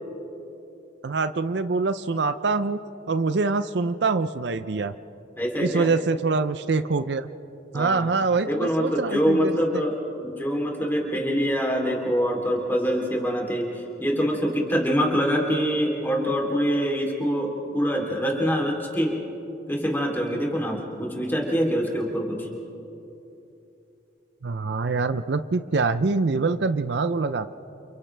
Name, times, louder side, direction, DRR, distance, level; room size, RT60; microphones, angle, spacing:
voice 1, 1.0-2.8 3.1-4.9 5.6-7.3 7.7-9.8 24.4-27.5, right 4 dB, 65° right, 12 dB, 0.5 m, -25 dB
voice 2, 5.4-5.9 7.7-8.0 8.5-13.7 14.0-19.2 19.7-22.5, equal, 10° left, 0 dB, 3.2 m, -25 dB
29.5 x 29.0 x 3.4 m, 2.9 s
head